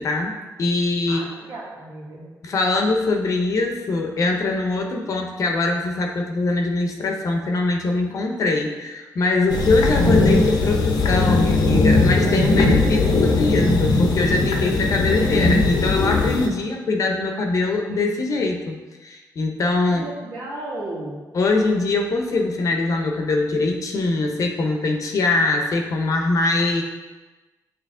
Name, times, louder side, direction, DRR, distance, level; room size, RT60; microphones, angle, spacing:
voice 1, 0.0-1.3 2.4-18.8 19.0-20.1 21.3-26.8, left 3 dB, 55° left, 2 dB, 0.8 m, -22 dB
voice 2, 1.1-2.2 19.9-21.2, right 1 dB, 70° right, -5 dB, 1.8 m, -34 dB
sound 1, 9.5-16.5, left 3 dB, 85° left, 0.7 m, -19 dB
8.3 x 3.1 x 3.7 m, 1.2 s
cardioid pair, 125°, 7 cm